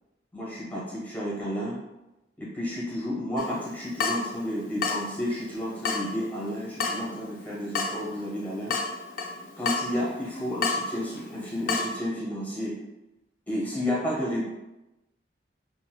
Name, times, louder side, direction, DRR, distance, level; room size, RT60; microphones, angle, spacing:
voice 1, 0.3-1.8 2.4-8.7 9.6-12.8 13.5-14.5, equal, 10° left, -6 dB, 0.8 m, -31 dB
Water tap faucet / Drip, 3.4-12.0, left 4 dB, 50° left, 0.3 m, -33 dB
3.8 x 2.3 x 2.2 m, 0.98 s
head